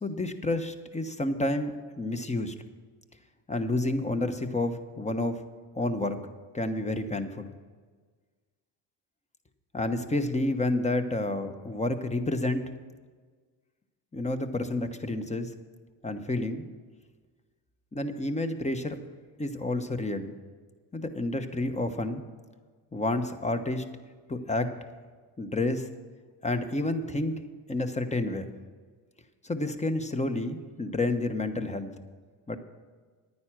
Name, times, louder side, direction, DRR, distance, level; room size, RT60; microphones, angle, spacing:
voice 1, 0.0-1.7 2.0-2.5 3.5-5.4 5.7-6.2 6.5-7.5 9.7-12.7 14.1-15.5 16.0-16.6 17.9-19.0 19.4-20.3 20.9-22.2 22.9-23.8 24.3-24.8 25.4-25.9 26.4-27.4 27.7-28.5 29.4-31.9 32.5-32.6, left 2 dB, 15° left, 8 dB, 1.0 m, -29 dB
10.0 x 9.6 x 6.0 m, 1.5 s
supercardioid pair, 70°, 46 cm